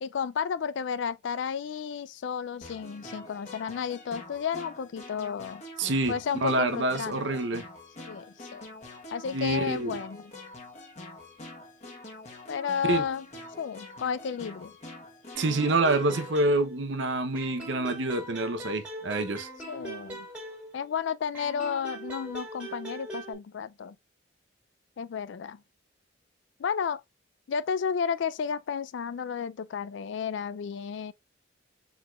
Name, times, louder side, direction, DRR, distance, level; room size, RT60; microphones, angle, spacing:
voice 1, 0.0-5.6 6.1-7.4 8.0-8.7 9.1-10.2 12.5-13.2 13.6-14.7 19.7-20.3 20.7-24.0 25.0-25.6 26.6-27.0 27.5-31.1, left 6 dB, 75° left, 0.3 m, -32 dB
sound 1, 2.6-16.3, left 2 dB, 35° left, 1.1 m, -46 dB
voice 2, 5.8-7.7 9.3-10.0 12.8-13.0 15.4-19.5, right 2 dB, 75° right, 0.8 m, -27 dB
sound 2, 15.3-17.0 17.3-21.0 21.3-23.3, right 2 dB, 5° right, 1.9 m, -41 dB
4.7 x 4.0 x 2.3 m
head